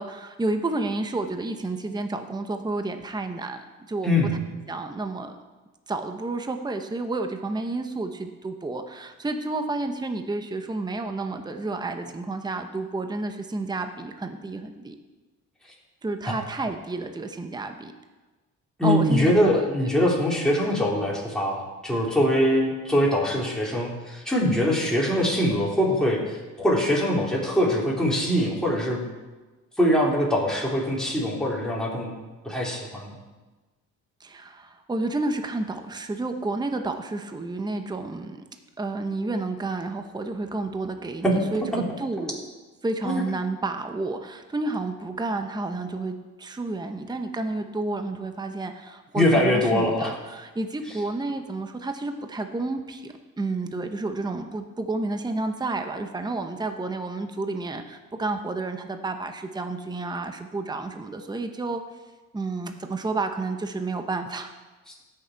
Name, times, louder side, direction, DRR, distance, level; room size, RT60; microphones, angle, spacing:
voice 1, 0.0-4.1 4.7-5.3 5.9-15.0 16.0-17.9 18.8-19.6 20.0-20.1 34.2-38.4 38.8-42.4 42.8-61.8 62.3-64.5, right 2 dB, 15° right, 6 dB, 0.9 m, -30 dB
voice 2, 18.8-29.0 29.8-32.1 32.4-33.1 41.2-41.4 43.0-43.3 49.1-50.2, equal, ahead, -5 dB, 3.7 m, -23 dB
16.0 x 6.8 x 4.6 m, 1.2 s
cardioid pair, 90°, 30 cm